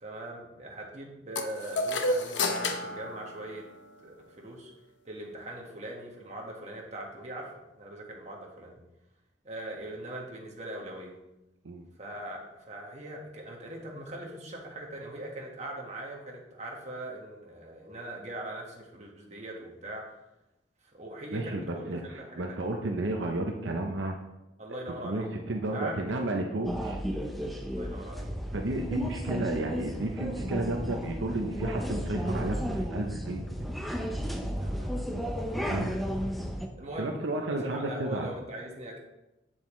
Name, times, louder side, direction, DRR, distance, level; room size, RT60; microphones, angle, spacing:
voice 1, 0.0-3.6 4.0-4.7 5.0-8.8 9.4-11.2 12.0-20.1 20.8-22.7 24.6-25.3 25.7-26.3 27.6-28.3 34.6-35.0 36.8-39.0, right 1 dB, 40° right, -1 dB, 1.6 m, -41 dB
sound 1, 1.3-4.0, left 2 dB, 70° left, 0.8 m, -31 dB
voice 2, 21.3-24.1 25.0-27.0 28.5-33.4 35.6-36.0 37.0-38.3, right 2 dB, 75° right, 2 dB, 0.7 m, -32 dB
sound 2, 26.7-36.7, equal, ahead, 0.6 m, -33 dB
8.0 x 7.2 x 3.1 m, 0.95 s
head